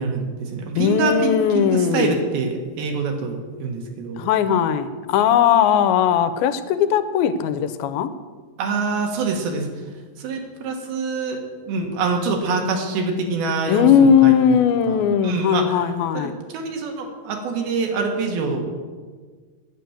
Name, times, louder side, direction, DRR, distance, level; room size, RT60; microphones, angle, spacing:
voice 1, 0.0-4.2 8.6-9.7 10.2-11.4 11.7-14.3 14.9-15.9 16.1-18.6, right 4 dB, 85° right, 3 dB, 3.3 m, -25 dB
voice 2, 0.7-2.2 4.2-8.1 13.7-16.4, left 8 dB, 85° left, 11 dB, 2.5 m, -18 dB
9.9 x 9.0 x 7.1 m, 1.5 s
omnidirectional pair, 4.3 m